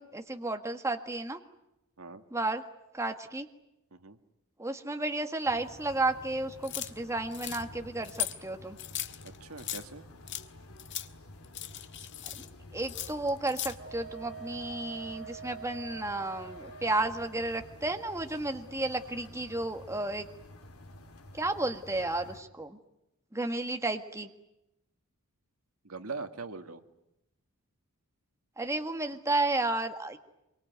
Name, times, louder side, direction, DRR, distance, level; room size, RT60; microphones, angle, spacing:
voice 1, 0.0-1.4 2.3-2.6 2.9-3.5 4.6-8.8 12.3-20.3 21.3-22.8 23.3-24.3 28.6-30.2, right 2 dB, 15° right, 6 dB, 1.6 m, -32 dB
sound 1, 5.4-22.4, left 1 dB, 75° left, 3.1 m, -51 dB
sound 2, 6.6-6.9 7.3-7.6 8.0-8.4 8.8-9.8 10.3-10.5 10.8-11.1 11.4-12.5 12.8-13.7, left 11 dB, 55° left, 1.5 m, -37 dB
voice 2, 9.2-10.1 25.8-26.8, right 4 dB, 75° right, 8 dB, 1.9 m, -41 dB
Wind instrument woodwind instrument, 13.8-17.4, right 6 dB, 50° right, 5.6 m, -46 dB
25.5 x 24.0 x 9.4 m, 0.88 s
head